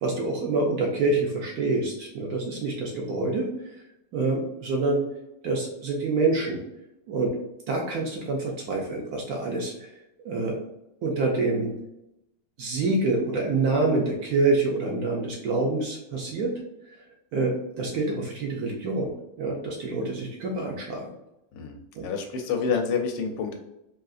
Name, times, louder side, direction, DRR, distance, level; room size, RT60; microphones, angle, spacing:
voice 1, 0.0-3.5 4.1-5.0 5.4-6.6 7.1-7.3 7.7-9.9 10.2-10.6 11.0-11.7 12.6-16.5 17.3-21.1 22.0-22.1, right 3 dB, 70° right, 0 dB, 1.0 m, -26 dB
voice 2, 21.5-23.6, left 5 dB, 90° left, 3 dB, 1.3 m, -28 dB
3.7 x 2.5 x 2.4 m, 0.87 s
omnidirectional pair, 2.0 m